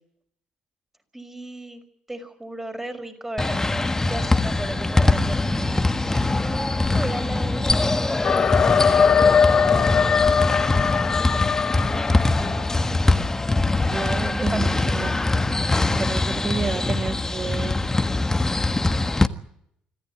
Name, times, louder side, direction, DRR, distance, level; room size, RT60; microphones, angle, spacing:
voice 1, 1.1-1.8 2.1-9.3 9.7-12.6 14.4-14.8 16.2-16.4, right 1 dB, 10° right, 7 dB, 5.5 m, -36 dB
sound 1, 3.4-19.3, left 2 dB, 15° left, 1.5 m, -22 dB
sound 2, 8.2-13.1, left 6 dB, 50° left, 1.0 m, -20 dB
voice 2, 13.8-15.1 16.0-17.8, right 4 dB, 35° right, 6 dB, 1.6 m, -30 dB
25.5 x 14.0 x 8.8 m, 0.72 s
supercardioid pair, 65°, 3 cm